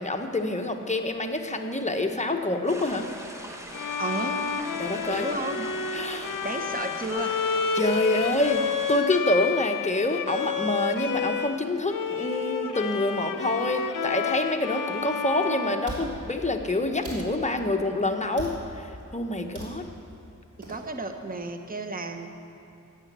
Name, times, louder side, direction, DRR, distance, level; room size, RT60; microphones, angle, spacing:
voice 1, 0.0-3.1 4.8-5.3 5.9-6.3 7.7-8.6 8.9-18.5 18.8-18.9 19.1-19.8, left 2 dB, 20° left, 4 dB, 1.0 m, -26 dB
sound 1, 2.7-9.0, equal, 10° right, 1.3 m, -41 dB
Bowed string instrument, 3.7-11.6 11.9-16.7, left 6 dB, 80° left, 0.6 m, -30 dB
voice 2, 4.0-4.4 5.1-5.7 5.9-6.1 6.4-7.3 20.7-22.3, right 2 dB, 25° right, 5 dB, 1.0 m, -32 dB
sound 2, 15.0-15.1 15.8-16.1 17.0-17.2 18.4-18.7 19.5-19.7 20.6-20.8, right 1 dB, 70° right, 3.1 m, -37 dB
12.0 x 7.8 x 8.2 m, 2.8 s
wide cardioid pair, 85°, 32 cm